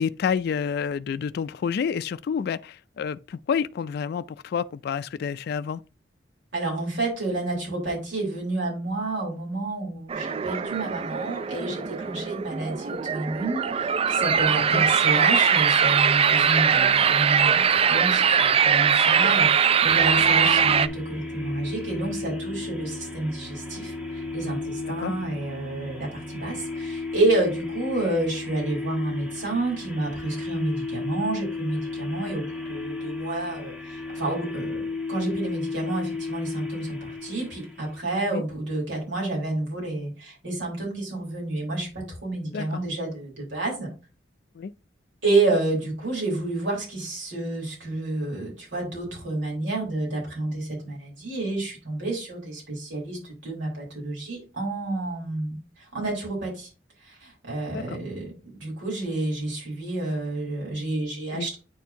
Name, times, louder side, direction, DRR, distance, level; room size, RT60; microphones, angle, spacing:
voice 1, 0.0-5.8 14.5-14.8 24.8-25.1 38.3-38.4 42.4-42.8 44.5-44.7 57.7-58.0 61.3-61.5, left 7 dB, 60° left, 0.3 m, -29 dB
voice 2, 6.5-43.9 45.2-56.7 57.0-58.3 58.5-61.6, right 2 dB, 90° right, 3.9 m, -29 dB
sound 1, 10.1-20.9, right 7 dB, 35° right, 0.3 m, -21 dB
sound 2, 19.9-38.1, left 3 dB, 10° right, 1.4 m, -34 dB
9.1 x 4.3 x 2.7 m
head